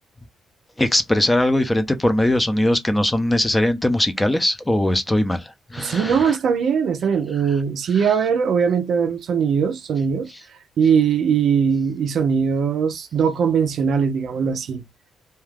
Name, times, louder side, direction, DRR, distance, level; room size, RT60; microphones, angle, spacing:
voice 1, 0.8-6.4 8.0-8.1, left 1 dB, 10° left, 0.6 m, -20 dB
voice 2, 5.8-10.3 10.8-14.9, right 6 dB, 65° right, 0.5 m, -20 dB
2.4 x 2.3 x 3.3 m
cardioid pair, 90°, 0 cm